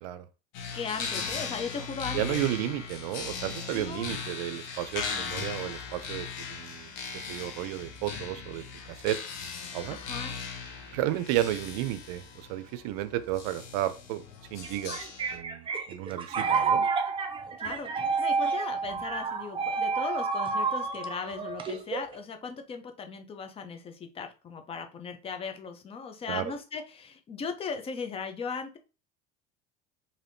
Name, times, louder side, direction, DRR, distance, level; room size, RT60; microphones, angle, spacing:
sound 1, 0.5-15.4, left 5 dB, 75° left, 0.8 m, -38 dB
voice 1, 0.7-2.4 3.7-4.1 9.9-10.4 17.6-17.9 18.2-28.8, left 5 dB, 30° left, 7 dB, 0.5 m, -37 dB
voice 2, 2.1-9.2 9.7-10.0 10.9-14.2 14.5-16.9 26.3-26.5, right 14 dB, 85° right, 13 dB, 0.4 m, -33 dB
sound 2, 14.6-22.2, right 5 dB, 25° right, 0.5 m, -29 dB
3.3 x 2.7 x 2.6 m, 0.33 s
supercardioid pair, 110°, 20 cm